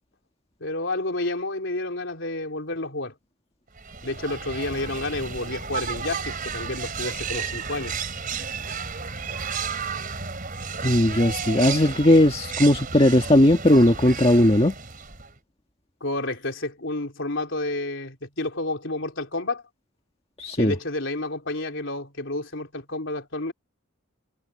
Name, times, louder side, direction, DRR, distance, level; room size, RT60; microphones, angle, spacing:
voice 1, 0.6-3.1 4.0-7.9 16.0-19.6 20.6-23.5, left 2 dB, 60° left, 4.1 m, -30 dB
sound 1, 3.8-15.4, right 5 dB, 40° right, 3.9 m, -33 dB
voice 2, 10.8-14.8 20.4-20.7, left 1 dB, 25° left, 1.7 m, -18 dB
head